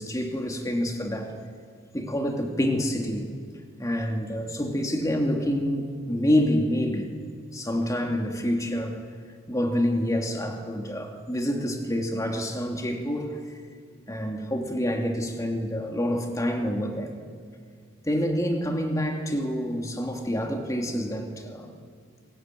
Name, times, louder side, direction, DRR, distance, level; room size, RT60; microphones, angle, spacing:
voice 1, 0.0-1.3 1.9-3.3 3.8-7.1 7.5-9.0 9.5-13.4 14.1-17.2 18.0-21.7, equal, 15° left, 2 dB, 2.8 m, -27 dB
29.0 x 21.5 x 9.3 m, 2.1 s
head